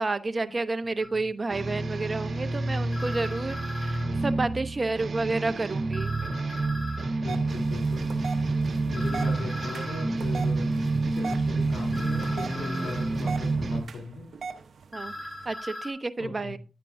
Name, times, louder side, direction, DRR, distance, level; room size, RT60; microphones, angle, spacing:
voice 1, 0.0-6.1 14.9-15.1 15.4-16.6, right 3 dB, 40° right, 11 dB, 0.9 m, -30 dB
sound 1, 1.0-1.1 2.9-4.1 5.9-7.1 8.9-10.1 11.9-13.1 14.9-15.9, left 1 dB, 20° left, 3.3 m, -39 dB
sound 2, 1.5-13.8, right 3 dB, 55° right, 1.8 m, -28 dB
voice 2, 7.2-8.2 8.8-14.3 16.2-16.6, left 3 dB, 80° left, 2 dB, 3.5 m, -38 dB
sound 3, 7.3-15.5, right 5 dB, 70° right, 0.9 m, -41 dB
10.0 x 9.0 x 2.7 m, 0.34 s
cardioid pair, 50°, 0 cm